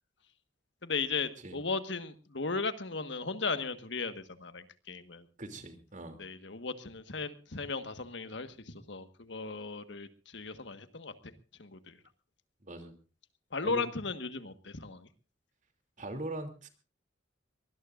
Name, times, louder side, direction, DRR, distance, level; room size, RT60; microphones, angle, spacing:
voice 1, 0.8-5.2 6.2-11.3 11.6-12.0 13.5-15.1, left 4 dB, 65° left, 10 dB, 1.5 m, -36 dB
voice 2, 5.4-6.2 12.6-13.0 13.6-13.8 16.0-16.7, right 1 dB, 40° right, 7 dB, 2.9 m, -41 dB
23.5 x 19.5 x 2.5 m, 0.35 s
head